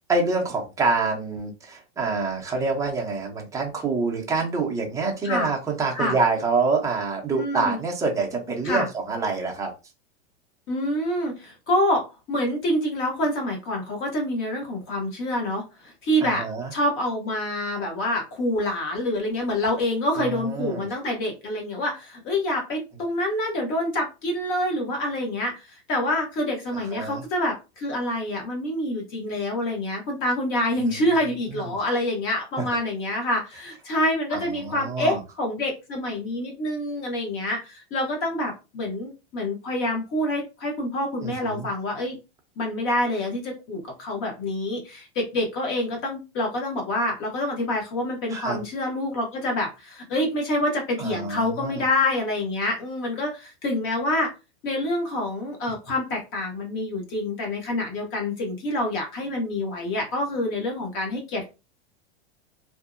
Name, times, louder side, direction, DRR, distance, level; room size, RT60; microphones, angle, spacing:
voice 1, 0.1-9.7 16.2-16.7 20.1-20.9 26.9-27.2 30.8-31.0 31.5-31.6 34.3-35.2 41.2-41.7 48.3-48.6 51.0-51.8, right 4 dB, 10° right, 0 dB, 0.5 m, -26 dB
voice 2, 7.3-7.8 8.6-8.9 10.7-16.5 16.7-42.2 42.6-54.3 54.6-61.5, left 1 dB, 40° left, 1 dB, 1.0 m, -27 dB
2.6 x 2.0 x 2.4 m, 0.28 s
supercardioid pair, 130°, 33 cm